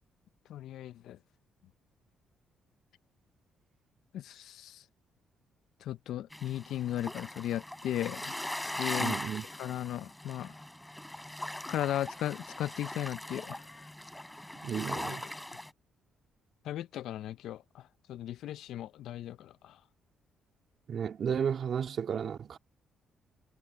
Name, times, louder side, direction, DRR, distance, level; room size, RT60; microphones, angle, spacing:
voice 1, 0.5-1.2 4.1-4.8 5.8-8.3 8.6-9.2 9.6-10.6 11.7-13.9 14.9-15.2 16.6-19.8, left 12 dB, 80° left, 0.6 m, -37 dB
sound 1, 6.3-15.7, left 1 dB, 5° left, 6.1 m, -40 dB
voice 2, 9.0-9.4 14.6-15.2 20.9-22.6, right 7 dB, 55° right, 2.5 m, -33 dB
cardioid pair, 90°, 0 cm